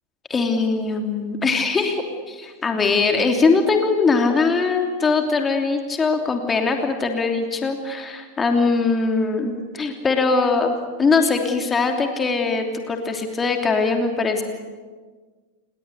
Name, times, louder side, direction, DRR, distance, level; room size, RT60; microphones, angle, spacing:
voice 1, 0.3-14.4, left 4 dB, 15° left, 4 dB, 3.0 m, -21 dB
28.5 x 22.0 x 8.1 m, 1.4 s
figure-of-eight pair, 90°, 0 cm